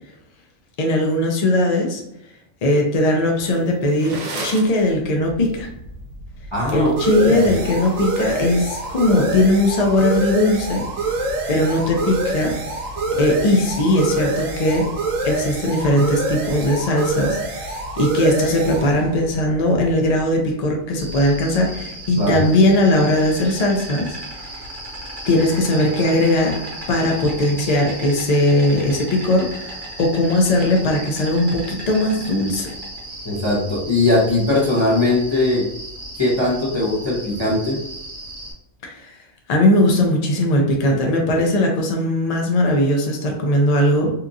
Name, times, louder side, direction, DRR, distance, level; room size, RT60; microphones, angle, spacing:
voice 1, 0.8-2.0 2.6-5.7 6.7-10.8 11.5-12.6 13.2-14.9 15.2-24.1 25.3-26.6 26.9-29.7 30.0-32.7 38.8-39.1 39.5-44.1, left 1 dB, 85° left, 1 dB, 0.3 m, -19 dB
sound 1, 3.5-4.9 6.9-8.7, right 2 dB, 65° right, 0.4 m, -33 dB
sound 2, 5.3-20.5, right 2 dB, 85° right, 1.0 m, -26 dB
voice 2, 6.5-6.9 7.1-7.4 22.2-22.4 33.2-35.7 36.2-37.8, left 2 dB, 30° left, -6 dB, 0.6 m, -20 dB
Insect, 21.0-38.5, right 1 dB, 40° right, 1.0 m, -35 dB
2.8 x 2.4 x 2.5 m, 0.81 s
omnidirectional pair, 1.3 m